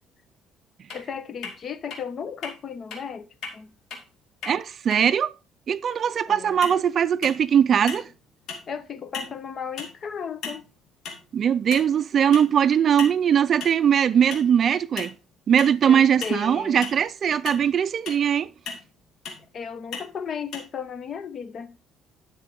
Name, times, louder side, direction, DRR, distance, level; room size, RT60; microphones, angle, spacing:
sound 1, 0.9-1.0 1.4-1.6 1.9-2.0 2.4-2.5 2.9-3.0 3.4-3.5 3.9-4.0 4.4-4.6 4.9-5.0 6.6-6.8 7.2-7.5 7.9-8.1 8.5-8.7 9.1-9.4 9.8-9.9 10.4-10.7 11.1-11.2 11.7-12.0 12.3-12.5 13.0-13.2 13.6-13.8 14.3-14.5 15.0-15.1 15.6-15.8 16.2-16.4 16.8-17.0 17.5-17.6 18.1-18.2 18.7-18.9 19.3-19.4 19.9-20.1 20.5-20.6, left 5 dB, 65° left, 2.5 m, -35 dB
voice 1, 0.9-3.7 6.3-6.6 8.7-10.6 15.9-16.9 19.5-21.8, left 6 dB, 45° left, 0.9 m, -35 dB
voice 2, 4.5-5.3 5.7-8.1 11.3-15.1 15.5-18.5, right 8 dB, 45° right, 0.4 m, -20 dB
11.0 x 6.1 x 3.6 m
cardioid pair, 115°, 0 cm